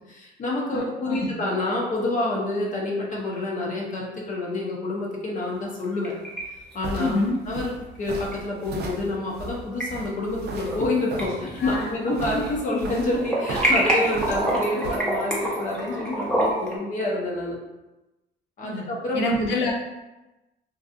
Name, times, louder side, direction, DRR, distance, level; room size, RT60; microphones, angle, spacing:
voice 1, 0.1-6.1 6.7-7.2 7.5-17.6 18.6-19.2, left 2 dB, 45° left, -3 dB, 0.6 m, -28 dB
voice 2, 0.7-1.3 7.0-7.4 11.6-11.9 18.6-18.9 19.1-19.7, left 2 dB, 90° left, -1 dB, 0.5 m, -26 dB
sound 1, 5.7-6.4 6.7-6.8 8.3-8.4 9.5-9.8 10.4-10.9 11.2-12.5 12.8-16.8, right 1 dB, 5° left, 0.6 m, -26 dB
sound 2, 6.4-15.0, right 3 dB, 65° right, 0.4 m, -36 dB
2.6 x 2.3 x 2.5 m, 1.0 s
cardioid pair, 130°, 18 cm